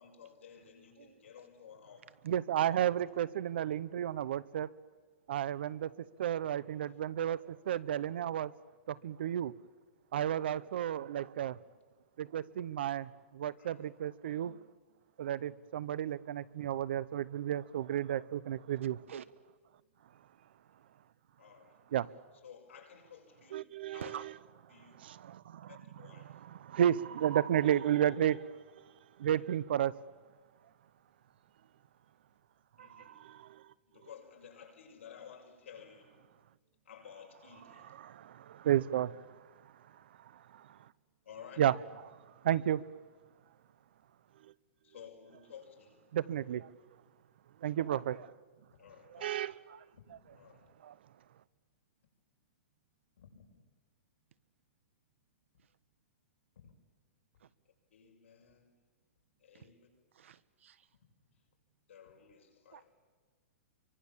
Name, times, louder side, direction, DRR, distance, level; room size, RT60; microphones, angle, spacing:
voice 1, 0.0-2.0 2.7-2.9 13.6-13.9 21.4-21.8 22.4-23.6 23.9-24.2 24.7-25.1 25.7-26.4 32.8-33.2 33.9-36.2 36.8-38.0 41.2-41.7 44.8-46.0 48.7-49.3 49.9-50.7 53.2-53.5 56.6-56.7 57.9-58.8 59.4-59.9 61.2-61.3 61.9-62.9, left 7 dB, 70° left, 5.8 m, -54 dB
voice 2, 2.2-4.7 5.3-5.9 6.2-7.4 7.7-8.5 8.9-9.5 10.1-11.6 12.2-14.6 15.2-19.0 21.9-22.1 23.5-24.2 25.0-25.7 26.5-28.6 29.2-29.9 32.8-33.6 38.0-39.2 40.5-40.7 41.6-41.8 42.4-42.8 46.1-46.7 47.6-48.3 49.1-49.8 50.8-50.9, right 10 dB, 50° right, 0.7 m, -32 dB
voice 3, 60.1-60.9 62.7-62.8, right 9 dB, 70° right, 1.2 m, -46 dB
29.0 x 24.0 x 7.4 m
hypercardioid pair, 180°, 7 cm